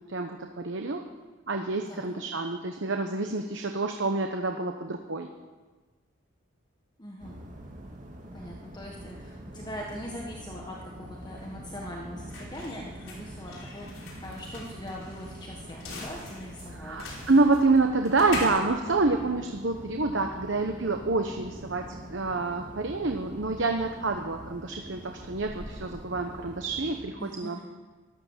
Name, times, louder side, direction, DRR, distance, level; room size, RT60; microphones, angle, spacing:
voice 1, 0.1-1.0 1.5-5.3 16.7-27.6, right 3 dB, 65° right, 4 dB, 1.0 m, -27 dB
voice 2, 7.0-7.4 8.3-17.0 27.2-27.6, equal, 20° left, -1 dB, 1.5 m, -41 dB
sound 1, 7.2-27.1, right 1 dB, 40° right, 2.2 m, -44 dB
sound 2, 10.8-19.9, left 2 dB, 80° left, 4.8 m, -43 dB
14.0 x 13.0 x 7.4 m, 1.3 s
head